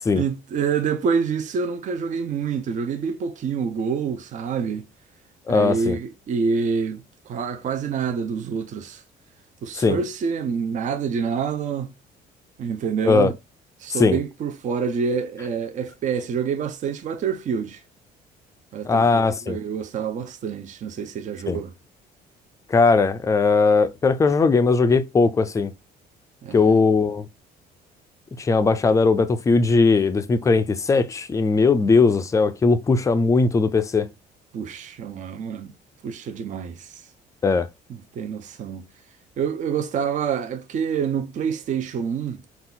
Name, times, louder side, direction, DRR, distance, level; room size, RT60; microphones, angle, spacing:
voice 1, 0.1-4.9 5.5-9.0 9.6-11.9 12.6-13.4 13.8-17.8 18.7-21.7 26.4-26.8 34.5-35.7 36.0-37.0 37.9-38.8 39.4-42.4, right 6 dB, 45° right, 0.6 m, -27 dB
voice 2, 5.5-6.0 9.8-10.0 13.0-13.3 14.0-14.2 18.8-19.6 21.5-21.6 22.7-25.7 26.5-27.2 28.4-34.1 37.4-37.7, left 4 dB, 20° left, 0.4 m, -19 dB
4.0 x 2.4 x 3.8 m
cardioid pair, 110°, 17 cm